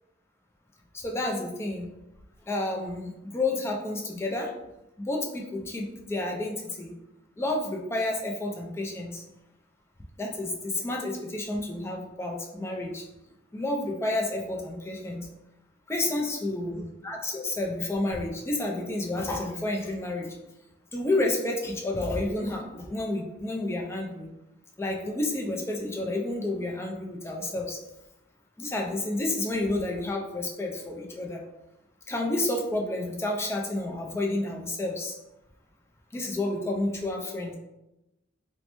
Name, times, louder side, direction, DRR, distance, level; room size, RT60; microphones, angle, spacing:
voice 1, 1.0-1.9 2.5-4.5 5.0-6.9 7.4-9.2 10.2-13.0 13.5-15.3 15.9-20.3 20.9-24.3 24.8-27.8 28.6-31.4 32.1-35.1 36.1-37.5, left 2 dB, 15° left, 0 dB, 0.3 m, -30 dB
3.1 x 2.1 x 2.9 m, 0.92 s
head